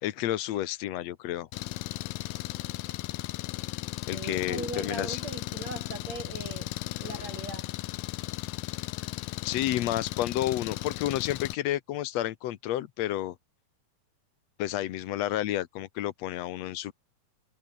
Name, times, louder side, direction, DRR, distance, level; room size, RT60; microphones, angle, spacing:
voice 1, 0.0-1.5 4.1-5.2 9.4-13.3 14.6-16.9, left 13 dB, 65° left, 1.8 m, -30 dB
Engine, 1.5-11.6, left 17 dB, 90° left, 2.6 m, -36 dB
voice 2, 4.1-6.7 7.0-7.7, right 3 dB, 50° right, 7.6 m, -39 dB
omnidirectional pair, 3.9 m